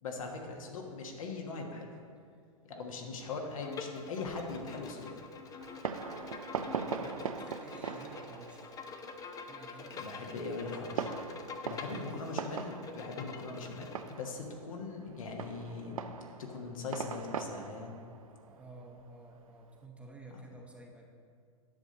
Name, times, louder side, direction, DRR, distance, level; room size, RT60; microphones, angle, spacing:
voice 1, 0.0-2.0 2.6-5.1 10.0-11.1 11.6-16.0 16.4-17.9 20.3-20.4, left 3 dB, 70° left, 1 dB, 1.4 m, -40 dB
Bowed string instrument, 3.6-14.1, left 5 dB, 20° left, 0.6 m, -46 dB
Fireworks, 5.6-19.8, right 6 dB, 80° right, 0.5 m, -42 dB
voice 2, 6.4-8.7 9.5-10.8 11.8-12.1 18.4-21.1, right 2 dB, 5° right, 0 dB, 0.9 m, -52 dB
10.0 x 6.5 x 4.0 m, 2.2 s
hypercardioid pair, 110°, 18 cm